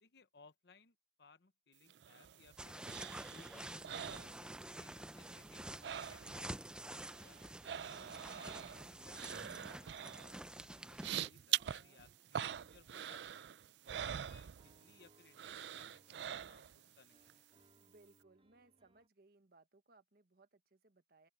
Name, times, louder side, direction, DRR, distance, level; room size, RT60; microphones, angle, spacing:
voice 1, 0.0-2.9 3.2-7.5 7.9-13.3 13.9-17.3, left 4 dB, 65° left, 0.9 m, -65 dB
sound 1, 1.9-4.9 5.2-6.6 6.8-15.0 15.3-16.9 17.3-17.4, right 10 dB, 75° right, 0.4 m, -44 dB
sound 2, 2.6-11.3, right 1 dB, 5° right, 0.5 m, -49 dB
sound 3, 3.5-19.1, right 1 dB, 35° right, 3.4 m, -71 dB
voice 2, 11.6-12.1 17.8-21.3, right 3 dB, 60° right, 1.3 m, -67 dB
open air
head